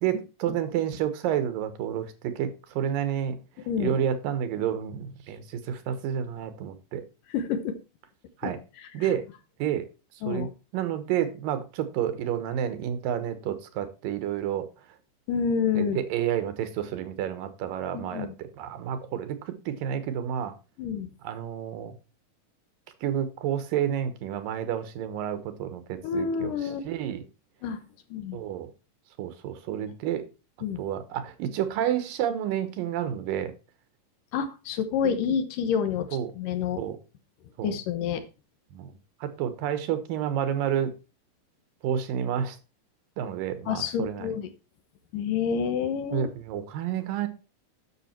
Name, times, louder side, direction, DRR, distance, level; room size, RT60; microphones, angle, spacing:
voice 1, 0.0-3.4 3.8-7.0 8.4-8.6 8.9-9.2 9.6-9.9 10.3-14.7 15.7-20.6 21.2-22.0 23.0-26.5 26.8-27.2 28.3-28.7 29.2-30.2 30.8-33.5 36.1-36.3 36.8-37.0 37.6-37.7 38.7-38.9 39.2-40.9 41.8-42.6 43.2-44.3 46.1-47.3, right 9 dB, 90° right, 2.9 m, -30 dB
voice 2, 3.7-4.0 7.3-7.8 8.4-8.5 8.8-8.9 10.2-10.5 15.3-16.0 17.9-18.3 20.8-21.1 26.0-26.8 27.6-27.8 28.1-28.4 30.6-30.8 34.3-36.8 37.6-38.2 43.7-44.5 45.1-46.3, left 7 dB, 80° left, 2.7 m, -28 dB
10.0 x 6.6 x 4.4 m
omnidirectional pair, 3.8 m